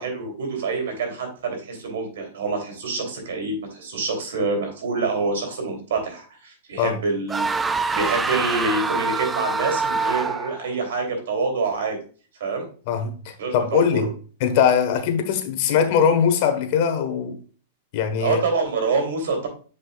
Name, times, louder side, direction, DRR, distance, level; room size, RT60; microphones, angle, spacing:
voice 1, 0.0-12.0 12.4-12.7 13.4-14.1 18.2-19.5, right 4 dB, 80° right, 3.0 m, -26 dB
sound 1, 7.3-10.6, right 4 dB, 10° right, 0.3 m, -25 dB
voice 2, 12.9-14.1 14.4-17.4 17.9-18.4, left 7 dB, 55° left, 1.3 m, -21 dB
8.0 x 5.2 x 2.4 m
hypercardioid pair, 135°, 0 cm